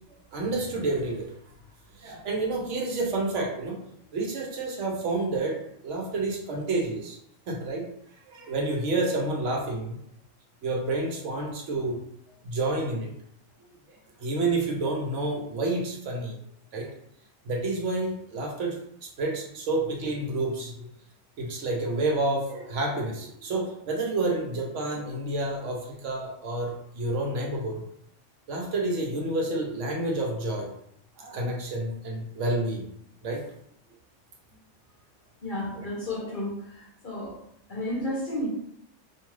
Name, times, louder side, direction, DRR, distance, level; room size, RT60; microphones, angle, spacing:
voice 1, 0.3-1.3 1.9-3.8 4.1-5.6 5.8-7.2 7.5-7.8 8.3-10.0 10.6-12.0 12.4-13.1 14.2-16.3 16.7-16.9 17.4-18.8 19.2-20.9 21.4-27.8 28.5-30.7 31.2-32.9 33.2-33.4 35.6-35.7, right 2 dB, 70° right, 0 dB, 1.0 m, -29 dB
voice 2, 35.4-37.4 37.7-38.5, left 1 dB, 50° left, -5 dB, 0.7 m, -32 dB
2.7 x 2.3 x 3.1 m, 0.71 s
omnidirectional pair, 1.3 m